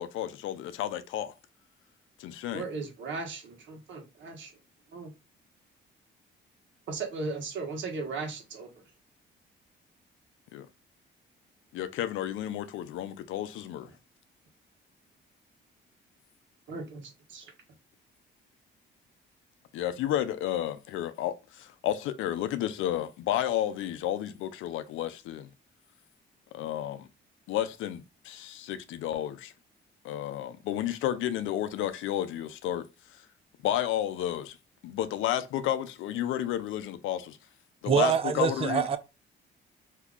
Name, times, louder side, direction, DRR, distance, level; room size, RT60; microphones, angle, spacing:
voice 1, 0.0-1.3 2.2-2.6 10.5-10.7 11.7-13.9 19.7-25.5 26.5-27.1 27.5-29.5 30.0-32.9 33.6-34.6 34.8-37.4 37.8-38.8, left 12 dB, 85° left, 0.5 m, -31 dB
voice 2, 2.5-4.5 4.9-5.1 6.9-8.7 16.7-17.5, right 3 dB, 70° right, 1.2 m, -37 dB
voice 3, 37.9-39.0, right 8 dB, 30° right, 0.4 m, -25 dB
2.8 x 2.3 x 3.5 m
cardioid pair, 90°, 20 cm